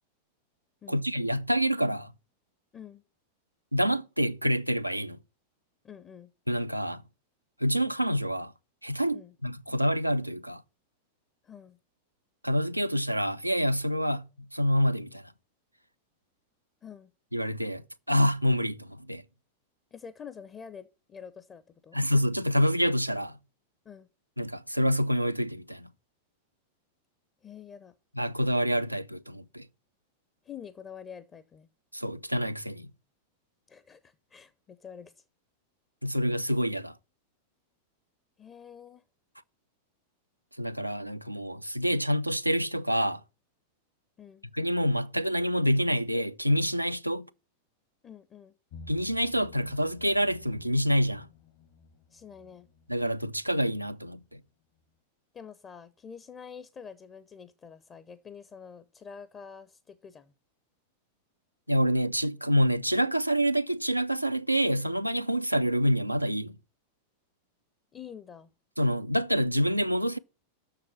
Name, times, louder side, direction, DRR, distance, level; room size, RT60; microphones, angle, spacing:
voice 1, 0.9-2.1 3.7-5.2 6.5-7.0 7.6-8.5 8.8-10.6 12.4-15.2 17.3-19.2 21.9-23.4 24.4-25.9 28.2-29.7 31.9-32.9 36.0-36.9 40.6-43.2 44.5-47.3 48.9-51.3 52.9-54.4 61.7-66.6 68.8-70.2, equal, 90° right, 0.4 m, -27 dB
voice 2, 5.8-6.3 9.1-9.3 11.4-11.8 16.8-17.1 19.9-22.0 23.8-24.1 27.4-27.9 30.4-31.7 33.7-35.2 38.4-39.0 44.2-44.4 48.0-48.5 52.1-52.7 55.3-60.3 67.9-68.5, left 7 dB, 25° left, 0.6 m, -47 dB
sound 1, 48.7-54.5 54.8-54.9, left 3 dB, 50° left, 1.0 m, -53 dB
6.7 x 6.5 x 7.3 m
figure-of-eight pair, 90°, 0 cm